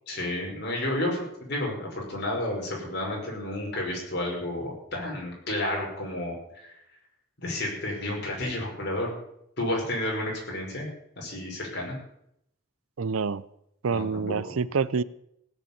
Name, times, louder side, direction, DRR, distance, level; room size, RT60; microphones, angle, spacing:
voice 1, 0.1-6.3 6.6-6.7 7.4-9.1 9.6-10.9 11.2-12.0 13.9-14.4, left 1 dB, 50° left, -1 dB, 5.5 m, -31 dB
voice 2, 13.0-13.4 13.8-15.0, right 5 dB, 85° right, 18 dB, 0.6 m, -27 dB
16.5 x 7.4 x 8.7 m, 0.75 s
head